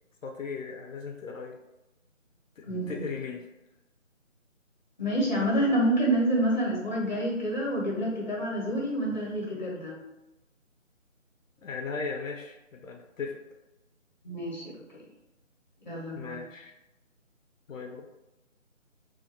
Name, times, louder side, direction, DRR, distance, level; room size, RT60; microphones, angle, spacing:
voice 1, 0.2-1.6 2.6-3.5 11.6-13.4 16.1-16.7 17.7-18.1, left 5 dB, 75° left, 2 dB, 0.5 m, -37 dB
voice 2, 2.7-3.1 5.0-10.0 14.2-14.6 14.9-15.0 15.9-16.4, right 1 dB, 35° left, -4 dB, 0.6 m, -28 dB
2.2 x 2.1 x 2.6 m, 0.97 s
figure-of-eight pair, 160°, 40 cm